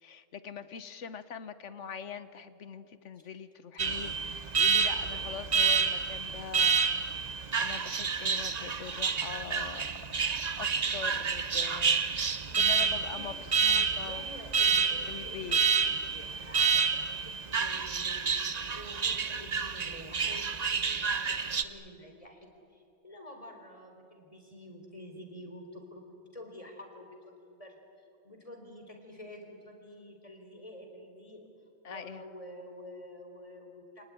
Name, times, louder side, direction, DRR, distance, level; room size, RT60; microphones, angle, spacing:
voice 1, 0.0-9.9 10.6-12.0 12.5-13.3 13.6-14.2 15.1-15.6 31.8-32.2, left 7 dB, 50° left, 12 dB, 1.1 m, -43 dB
Alarm, 3.8-21.6, right 6 dB, 50° right, 0.4 m, -29 dB
voice 2, 5.1-5.4 12.5-13.4 14.0-18.3 18.6-27.8 28.2-31.5 31.9-34.0, left 1 dB, 20° left, 3 dB, 3.9 m, -49 dB
28.0 x 19.0 x 9.8 m, 2.6 s
omnidirectional pair, 1.9 m